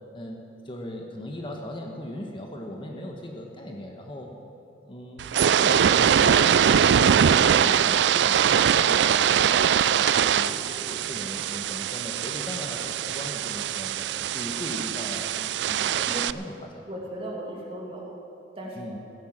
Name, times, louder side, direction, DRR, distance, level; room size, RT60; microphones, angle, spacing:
voice 1, 0.1-4.4 4.8-5.3 5.5-9.4 9.9-16.9 18.8-19.0, left 1 dB, 30° left, 1 dB, 1.2 m, -38 dB
sound 1, 5.2-16.3, right 8 dB, 75° right, 0.3 m, -22 dB
voice 2, 15.7-16.3 16.9-18.1 18.6-19.0, right 1 dB, 30° right, -2 dB, 2.6 m, -37 dB
15.0 x 10.0 x 7.5 m, 2.7 s
head